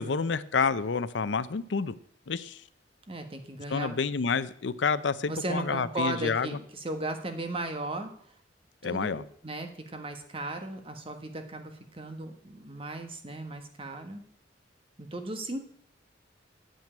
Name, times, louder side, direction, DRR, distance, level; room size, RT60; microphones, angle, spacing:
voice 1, 0.0-2.0 2.3-2.6 3.7-6.6 8.8-9.2, left 5 dB, 85° left, 16 dB, 0.6 m, -29 dB
voice 2, 3.1-3.9 5.3-8.1 8.8-9.2 9.4-14.2 15.0-15.6, right 2 dB, 30° right, 6 dB, 1.5 m, -36 dB
9.1 x 7.5 x 8.8 m, 0.64 s
head